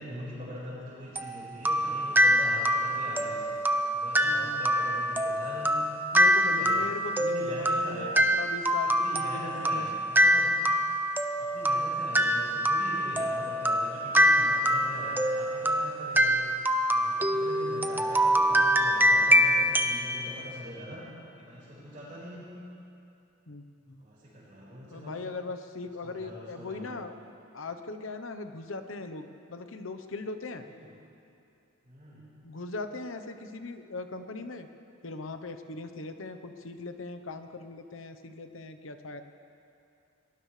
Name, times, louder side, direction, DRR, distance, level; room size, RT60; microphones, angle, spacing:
voice 1, 0.0-3.6 3.9-5.7 6.1-6.9 7.3-8.2 8.8-10.5 11.4-16.4 16.9-21.1 21.4-22.4 24.0-25.1 26.0-27.0 30.6-30.9 31.8-32.2, equal, 35° right, -11 dB, 5.0 m, -42 dB
sound 1, 1.2-20.0, equal, 10° right, 0.6 m, -25 dB
voice 2, 4.2-4.7 6.1-9.9 23.5-24.0 24.9-27.1 27.5-30.6 32.4-34.7 35.0-39.2, left 3 dB, 80° left, 8 dB, 1.0 m, -39 dB
22.5 x 19.0 x 3.3 m, 2.7 s
head